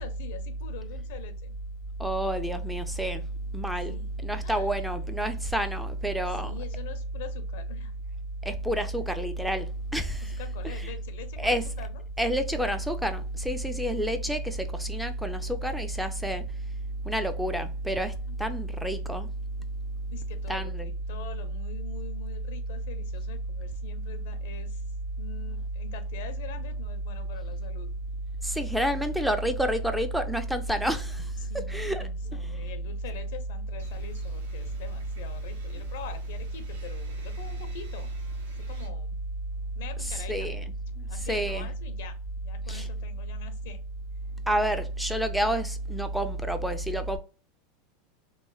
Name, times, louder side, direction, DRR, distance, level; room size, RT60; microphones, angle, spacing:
voice 1, 0.0-1.5 3.9-4.1 4.4-4.7 6.3-7.9 10.2-12.0 18.3-18.4 20.1-24.8 25.2-27.9 31.4-38.1 38.6-39.2 39.7-40.5 41.1-43.8, left 7 dB, 75° left, 0.6 m, -45 dB
voice 2, 2.0-3.2 3.5-4.0 4.2-6.5 8.4-10.4 10.6-10.9 11.4-11.6 12.2-16.4 17.1-18.1 18.4-19.3 20.5-20.9 28.4-31.3 31.5-32.1 40.3-40.6 41.3-41.7 42.7-42.9 44.5-47.2, right 1 dB, ahead, 0.3 m, -29 dB
sound 1, 33.8-38.9, right 1 dB, 85° right, 0.9 m, -49 dB
3.0 x 2.0 x 2.2 m
supercardioid pair, 115°, 0 cm